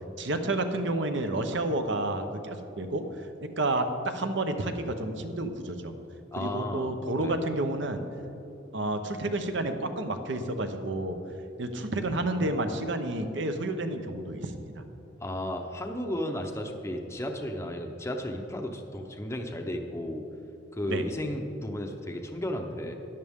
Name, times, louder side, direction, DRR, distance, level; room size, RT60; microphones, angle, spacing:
voice 1, 0.2-3.0 3.6-5.9 6.4-8.0 8.7-11.2 11.6-14.8 20.9-21.0, right 2 dB, 65° right, 7 dB, 0.8 m, -30 dB
voice 2, 6.3-7.4 15.2-20.3 20.7-22.9, left 1 dB, 15° left, 3 dB, 0.7 m, -34 dB
13.5 x 10.5 x 3.6 m, 2.7 s
head